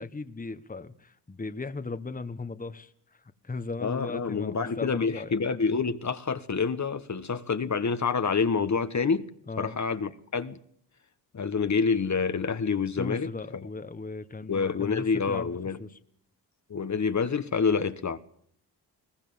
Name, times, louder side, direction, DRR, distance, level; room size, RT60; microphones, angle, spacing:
voice 1, 0.0-2.9 3.4-5.3 9.5-9.8 13.0-16.0, left 3 dB, 20° left, 1.4 m, -37 dB
voice 2, 3.8-9.3 9.6-10.6 11.3-13.7 14.5-15.8 16.7-18.2, left 5 dB, 40° left, 1.4 m, -27 dB
21.5 x 18.5 x 7.1 m
cardioid pair, 65°, 42 cm